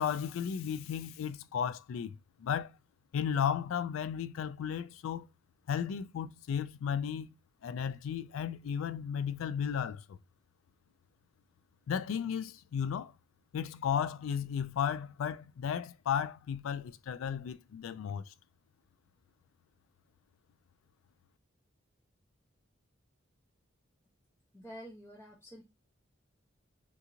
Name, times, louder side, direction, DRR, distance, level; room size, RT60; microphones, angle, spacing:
voice 1, 0.0-2.7 3.1-5.3 5.7-7.3 7.6-10.2 11.9-13.1 13.5-18.3, left 8 dB, 85° left, 0.3 m, -34 dB
voice 2, 24.5-25.6, equal, 15° left, 0.5 m, -48 dB
3.8 x 2.4 x 2.9 m
head